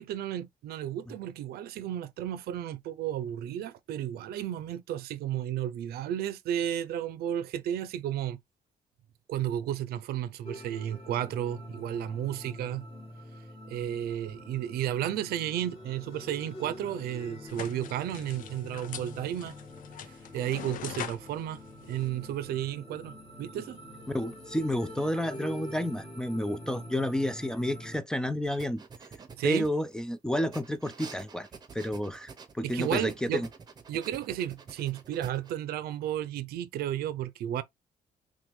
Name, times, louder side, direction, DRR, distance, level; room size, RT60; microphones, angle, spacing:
voice 1, 0.0-8.4 9.3-12.9 13.7-19.5 20.0-23.8 29.3-29.7 32.6-33.4 33.9-37.6, right 11 dB, 90° right, 0.6 m, -33 dB
sound 1, 10.4-28.0, left 1 dB, 35° left, 1.8 m, -46 dB
sound 2, 17.5-22.7, left 9 dB, 60° left, 0.7 m, -44 dB
voice 2, 24.1-28.8 29.4-31.5 31.7-33.5, left 1 dB, 5° left, 0.4 m, -30 dB
sound 3, 28.4-30.0 30.5-35.5, right 5 dB, 25° right, 0.8 m, -48 dB
6.0 x 2.4 x 3.4 m
cardioid pair, 160°, 16 cm